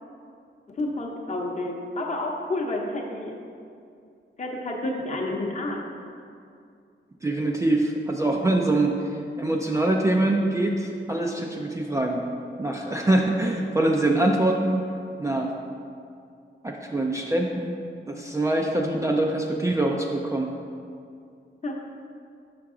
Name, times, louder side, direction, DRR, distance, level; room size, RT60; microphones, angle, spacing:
voice 1, 0.7-3.4 4.4-5.8 21.6-21.8, left 2 dB, 35° left, 0 dB, 0.8 m, -30 dB
voice 2, 7.2-12.2 12.6-14.9 15.2-15.5 16.6-17.7 18.1-20.5, right 1 dB, 15° right, 0 dB, 0.4 m, -24 dB
5.9 x 5.7 x 3.7 m, 2.4 s
wide cardioid pair, 150°, 20 cm